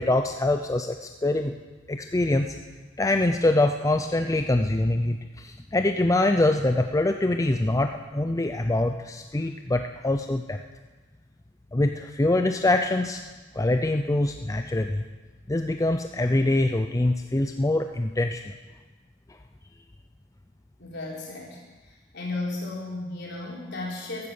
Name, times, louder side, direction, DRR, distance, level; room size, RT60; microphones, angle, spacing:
voice 1, 0.0-1.5 1.9-2.6 3.0-10.6 11.7-13.2 13.5-15.0 15.5-18.5, left 2 dB, 15° left, 6 dB, 0.5 m, -24 dB
voice 2, 20.8-21.6 22.1-24.3, left 2 dB, 60° left, -3 dB, 4.3 m, -34 dB
15.0 x 11.5 x 7.0 m, 1.3 s
head